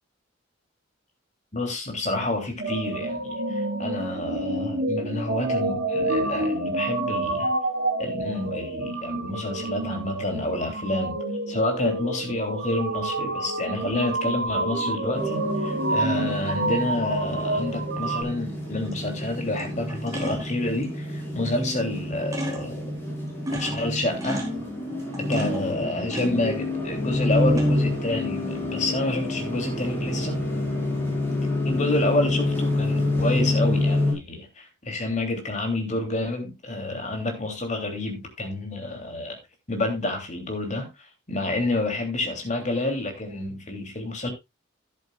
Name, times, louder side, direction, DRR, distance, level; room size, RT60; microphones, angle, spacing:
voice 1, 1.5-7.5 8.0-11.2 11.5-22.9 23.5-24.5 25.2-30.4 31.6-39.4 39.7-40.9 41.3-44.3, left 2 dB, 35° left, 3.0 m, -29 dB
sound 1, 2.6-18.2, right 2 dB, 55° right, 3.6 m, -28 dB
sound 2, 13.3-13.4 17.4-17.6 18.6-19.0 19.3-20.8 21.6-21.7 22.0-22.1 22.3-22.8 23.2-26.9 27.2-27.9 28.4-28.9, right 1 dB, 15° right, 2.9 m, -36 dB
sound 3, 15.1-34.1, left 1 dB, 10° left, 5.1 m, -28 dB
12.5 x 10.5 x 2.4 m
head